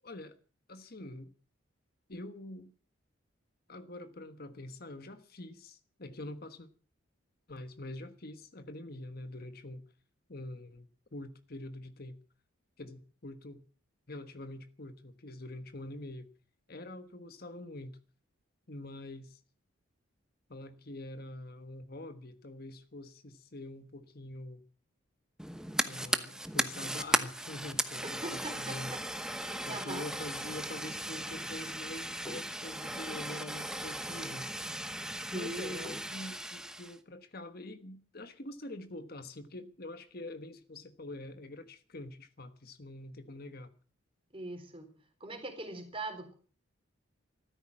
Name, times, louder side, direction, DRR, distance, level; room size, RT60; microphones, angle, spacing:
voice 1, 0.0-0.4 0.7-1.3 2.1-2.7 3.7-6.7 7.5-9.8 10.3-12.2 12.8-13.6 14.1-16.3 16.7-18.0 18.7-19.4 20.5-24.6 25.8-28.9 29.6-34.8 35.3-43.7, left 1 dB, 50° left, 1.3 m, -45 dB
Fire, 25.4-37.0, right 1 dB, 5° right, 1.0 m, -36 dB
voice 2, 28.0-29.0 29.4-30.1 35.2-36.0 44.3-44.9 45.2-46.3, right 2 dB, 25° right, 3.7 m, -41 dB
14.5 x 13.0 x 7.5 m
head